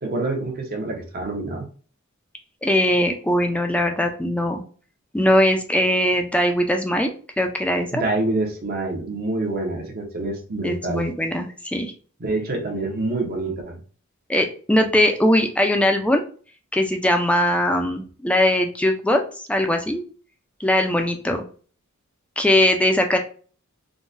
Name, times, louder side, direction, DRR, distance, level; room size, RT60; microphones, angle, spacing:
voice 1, 0.0-1.7 7.9-11.1 12.2-13.8, right 2 dB, 45° right, 2 dB, 0.7 m, -26 dB
voice 2, 2.6-4.6 5.1-8.0 10.6-11.9 14.3-16.2 16.7-19.2 19.5-20.0 20.6-21.4 22.4-23.2, left 1 dB, 5° left, 4 dB, 0.4 m, -20 dB
3.7 x 2.1 x 2.5 m, 0.41 s
head